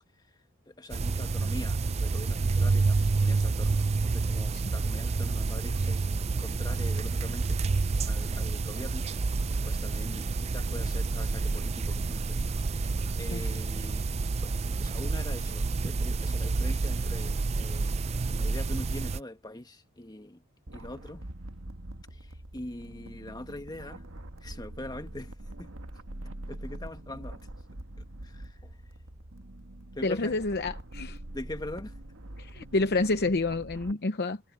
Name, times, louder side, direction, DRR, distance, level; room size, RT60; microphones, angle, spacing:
voice 1, 0.7-6.0 6.4-7.6 8.1-9.1 9.6-14.0 14.4-18.0 18.3-20.4 20.7-21.2 22.1-24.1 24.4-25.7 26.5-27.4 28.2-28.8 29.9-30.4 31.3-32.0, left 1 dB, 20° left, 1.5 m, -43 dB
sound 1, 0.9-19.2, right 3 dB, 30° right, 0.4 m, -29 dB
sound 2, 20.7-33.9, right 1 dB, 70° right, 1.7 m, -44 dB
voice 2, 30.0-31.2 32.4-34.4, left 2 dB, 55° left, 0.8 m, -28 dB
head